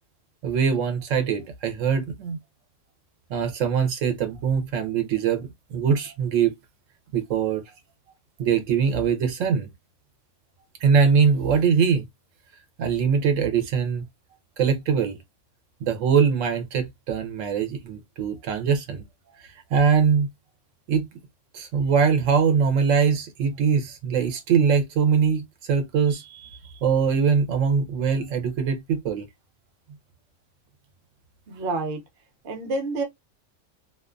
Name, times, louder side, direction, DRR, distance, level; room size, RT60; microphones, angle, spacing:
voice 1, 0.4-2.4 3.3-6.5 7.1-7.6 8.4-9.7 10.8-12.0 12.8-14.1 14.6-15.2 15.8-19.0 19.4-20.3 20.9-21.1 21.5-29.3, right 6 dB, 85° right, 1.0 m, -22 dB
voice 2, 31.5-32.0 32.4-33.0, right 3 dB, 55° right, 0.8 m, -28 dB
2.4 x 2.3 x 2.4 m
omnidirectional pair, 1.3 m